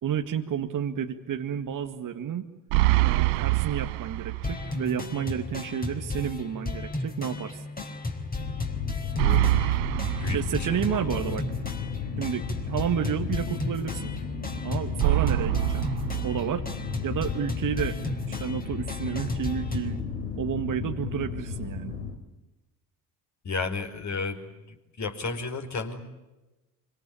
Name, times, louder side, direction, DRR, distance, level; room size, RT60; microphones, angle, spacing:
voice 1, 0.0-2.5 3.0-7.6 9.9-11.5 12.2-14.1 14.6-15.9 16.2-16.7 17.0-18.0 18.3-20.0 20.4-22.0, right 9 dB, 40° right, 5 dB, 1.9 m, -31 dB
sound 1, 2.7-4.7 5.1-5.2 9.2-11.2 15.0-17.0, right 20 dB, 60° right, 0.9 m, -25 dB
sound 2, 4.4-20.0, left 2 dB, 20° left, 4.0 m, -34 dB
sound 3, 8.4-22.1, left 6 dB, 65° left, 3.8 m, -35 dB
voice 2, 9.1-9.5 10.2-11.2 23.4-26.0, left 4 dB, 35° left, 5 dB, 5.0 m, -33 dB
25.5 x 25.5 x 8.8 m, 1.1 s
hypercardioid pair, 65°, 48 cm